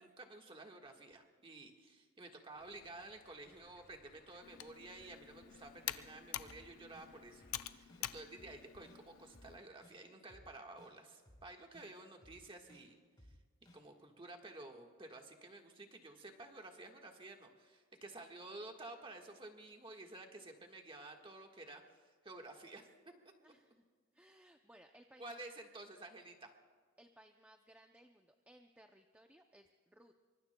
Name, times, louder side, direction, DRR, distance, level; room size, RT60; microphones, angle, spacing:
voice 1, 0.0-13.0 13.7-22.9 25.2-26.5, right 2 dB, 25° right, 3 dB, 1.4 m, -52 dB
Stream, 2.5-7.5, left 2 dB, 50° left, 5.5 m, -68 dB
Computer keyboard, 4.4-9.6, left 12 dB, 70° left, 0.5 m, -47 dB
sound 1, 6.5-6.6 6.9-7.1 7.4-7.5 7.9-8.0 8.4-8.5 8.9-9.0 9.3-9.5 9.8-9.9 10.3-10.4 10.8-10.9 11.3-11.4 11.7-11.9 12.2-12.3 12.7-12.8 13.2-13.3 13.7-13.8, equal, 20° left, 4.2 m, -61 dB
voice 2, 23.4-23.8 24.1-25.4 27.0-30.1, right 1 dB, 5° right, 5 dB, 0.5 m, -63 dB
26.0 x 24.0 x 2.2 m, 1.5 s
head